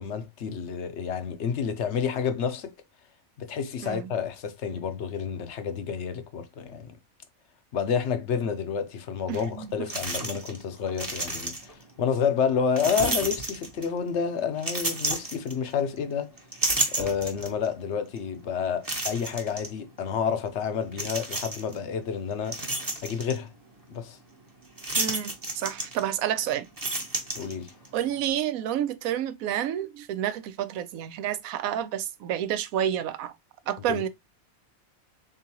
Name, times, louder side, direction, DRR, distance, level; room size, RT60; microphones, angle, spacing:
voice 1, 0.0-2.7 3.4-7.0 7.7-16.3 17.0-22.6 23.0-23.5 23.9-24.2 27.4-27.7 33.9-34.1, left 7 dB, 60° left, 0.9 m, -29 dB
sound 1, 9.3-9.4 9.9-10.6 10.9-11.8 12.8-14.0 14.6-16.0 16.4-17.7 18.2-18.3 18.8-19.7 20.9-21.8 22.2-23.4 24.8-26.3 26.6-27.9, right 2 dB, 20° right, 0.8 m, -31 dB
voice 2, 9.3-9.9 25.0-26.7 27.9-33.3 33.7-34.1, right 10 dB, 80° right, 1.0 m, -29 dB
3.8 x 3.7 x 2.8 m
omnidirectional pair, 1.4 m